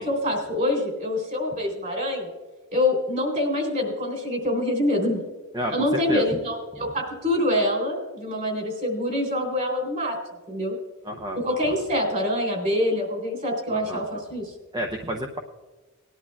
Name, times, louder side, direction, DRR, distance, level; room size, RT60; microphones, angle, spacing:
voice 1, 0.0-2.3 2.7-5.2 5.7-10.2 10.5-10.8 11.4-14.5, left 1 dB, 40° right, 2 dB, 3.5 m, -25 dB
voice 2, 5.5-6.2 11.1-11.4 13.7-14.0 14.7-15.4, equal, 20° right, 3 dB, 0.7 m, -30 dB
19.5 x 11.0 x 2.3 m, 1.3 s
head